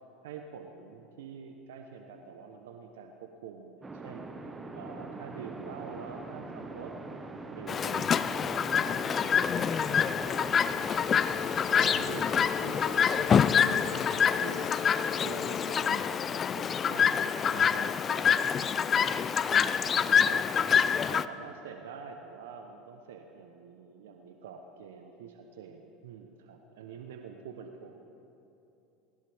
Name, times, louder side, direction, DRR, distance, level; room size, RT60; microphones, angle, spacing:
voice 1, 0.2-6.9 7.5-9.5 10.1-10.8 11.7-20.5 21.1-28.0, right 6 dB, 80° right, 4 dB, 0.9 m, -46 dB
sound 1, 3.8-14.3, right 3 dB, 20° right, 1.3 m, -43 dB
Chirp tweet, 7.7-21.3, left 7 dB, 35° left, 0.4 m, -26 dB
sound 2, 10.3-16.5, left 10 dB, 80° left, 1.9 m, -41 dB
20.0 x 17.5 x 3.5 m, 2.9 s
hypercardioid pair, 80°, 0 cm